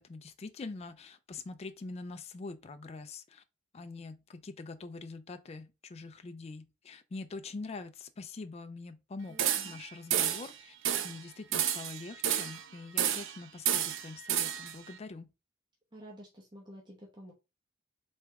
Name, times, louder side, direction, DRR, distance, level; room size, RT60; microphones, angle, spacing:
voice 1, 0.0-3.4 3.7-10.7 11.0-15.3, left 3 dB, 30° left, 0.4 m, -44 dB
voice 2, 9.3-9.8 15.9-17.3, equal, 20° right, 0.9 m, -51 dB
sound 1, 9.4-9.8 10.1-10.5 10.8-11.2 11.5-12.6 13.0-13.4 13.6-14.7, right 10 dB, 65° right, 0.5 m, -30 dB
3.5 x 3.2 x 4.5 m
head